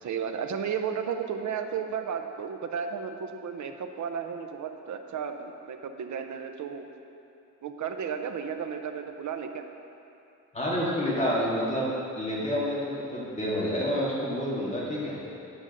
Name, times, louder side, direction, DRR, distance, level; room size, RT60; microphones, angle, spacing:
voice 1, 0.0-6.9 7.6-9.6, right 7 dB, 65° right, 6 dB, 0.7 m, -33 dB
voice 2, 10.5-11.9 12.2-15.2, equal, 20° left, -7 dB, 2.0 m, -28 dB
9.9 x 5.0 x 6.5 m, 2.8 s
wide cardioid pair, 165°, 32 cm